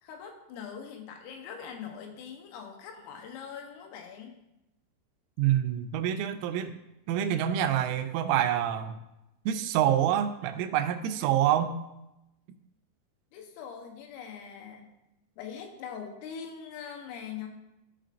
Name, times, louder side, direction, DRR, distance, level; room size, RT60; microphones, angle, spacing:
voice 1, 0.0-4.4 13.3-14.9 15.4-17.5, left 7 dB, 90° left, 3 dB, 3.6 m, -42 dB
voice 2, 5.4-6.7 7.1-9.0 9.5-11.8, right 10 dB, 85° right, 8 dB, 3.0 m, -26 dB
14.0 x 5.0 x 2.5 m, 0.90 s
omnidirectional pair, 5.7 m